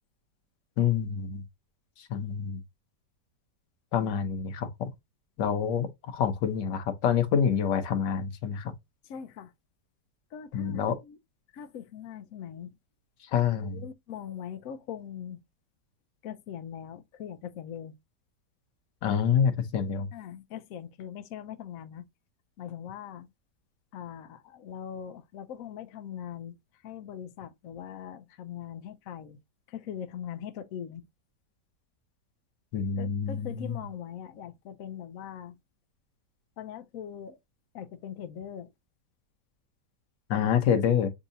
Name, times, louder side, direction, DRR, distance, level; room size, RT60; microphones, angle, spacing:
voice 1, 0.8-1.4 2.0-2.6 3.9-4.9 5.4-8.7 10.5-11.0 13.3-13.8 19.0-20.1 32.7-33.8 40.3-41.1, left 8 dB, 90° left, 1.5 m, -27 dB
voice 2, 9.0-9.5 10.3-11.2 11.5-12.7 13.6-15.4 16.2-18.0 20.1-22.1 22.6-23.3 23.9-26.6 26.8-29.4 29.7-31.1 33.0-35.6 36.6-37.4 37.7-38.7, left 9 dB, 65° left, 0.9 m, -41 dB
7.2 x 2.8 x 2.6 m
omnidirectional pair, 1.8 m